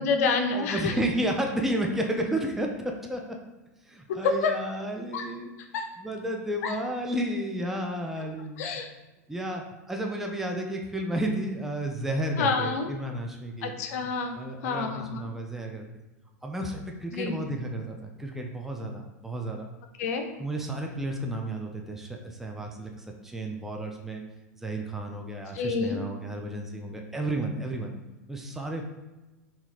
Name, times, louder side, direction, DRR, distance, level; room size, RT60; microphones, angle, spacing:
voice 1, 0.0-0.9 4.1-4.5 5.1-5.3 5.7-5.9 6.6-6.7 8.6-8.9 12.4-12.9 13.6-14.4 14.6-15.3 17.1-17.4 20.0-20.3 25.5-26.0, left 4 dB, 65° left, 5 dB, 0.6 m, -28 dB
voice 2, 0.5-3.2 3.9-5.5 6.0-8.7 9.3-13.7 14.3-15.9 16.4-19.7 20.4-24.2 24.6-27.9 28.3-28.9, right 1 dB, 5° right, 1 dB, 0.5 m, -32 dB
2.9 x 2.8 x 4.0 m, 1.1 s
hypercardioid pair, 105°, 9 cm